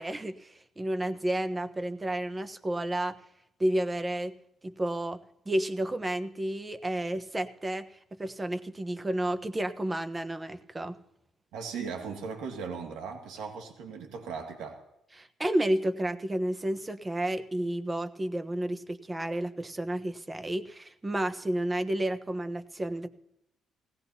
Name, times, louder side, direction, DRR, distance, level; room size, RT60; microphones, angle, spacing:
voice 1, 0.0-3.2 3.6-4.3 4.6-5.2 5.5-11.0 15.2-23.1, right 1 dB, 20° right, 10 dB, 1.1 m, -31 dB
voice 2, 11.5-14.8, right 5 dB, 90° right, 3 dB, 2.2 m, -38 dB
19.5 x 17.0 x 2.8 m, 0.83 s
cardioid pair, 90°, 0 cm